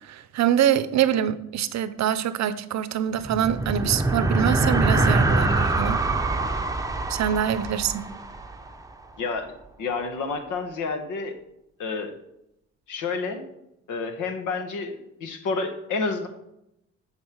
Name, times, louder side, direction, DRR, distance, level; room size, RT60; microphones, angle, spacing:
voice 1, 0.0-6.0 7.1-8.1, right 10 dB, 65° right, 14 dB, 0.7 m, -24 dB
sound 1, 3.2-8.9, right 2 dB, 10° right, 0.7 m, -24 dB
voice 2, 9.2-9.5 9.8-11.3 11.8-12.1 12.9-13.4 13.9-16.3, left 4 dB, 80° left, 6 dB, 1.4 m, -29 dB
9.6 x 4.2 x 6.2 m, 0.84 s
cardioid pair, 90°, 30 cm